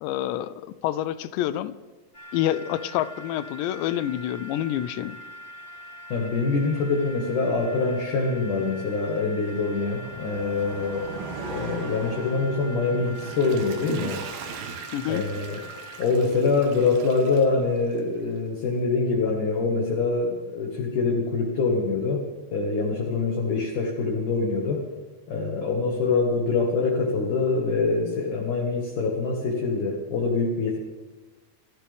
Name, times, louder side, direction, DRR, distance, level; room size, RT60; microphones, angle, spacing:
voice 1, 0.0-1.8 2.3-5.2 14.9-15.2, left 12 dB, 80° left, 15 dB, 2.6 m, -28 dB
sound 1, 2.1-16.0, equal, 20° left, 4.5 m, -43 dB
voice 2, 6.1-11.1 11.5-14.2 15.1-15.6 16.0-22.2 22.5-24.8 25.3-30.8, left 4 dB, 55° left, -1 dB, 2.6 m, -25 dB
sound 2, 9.5-14.6, right 4 dB, 65° right, 3.4 m, -40 dB
Water / Toilet flush, 12.9-18.2 18.7-18.8, right 7 dB, 90° right, 3.9 m, -39 dB
28.0 x 14.5 x 3.5 m, 1.2 s
omnidirectional pair, 5.5 m